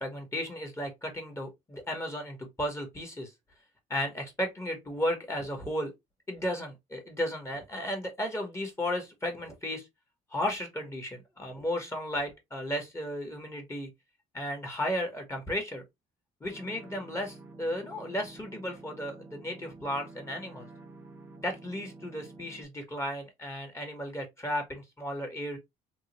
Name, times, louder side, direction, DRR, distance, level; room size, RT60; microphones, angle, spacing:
voice 1, 0.0-3.3 3.9-5.9 6.3-9.8 10.3-13.9 14.3-15.8 16.4-20.7 21.4-25.6, equal, 15° left, 1.3 m, -34 dB
sound 1, 16.5-22.6, right 2 dB, 15° right, 0.8 m, -49 dB
3.6 x 2.4 x 3.0 m
cardioid pair, 110°, 17 cm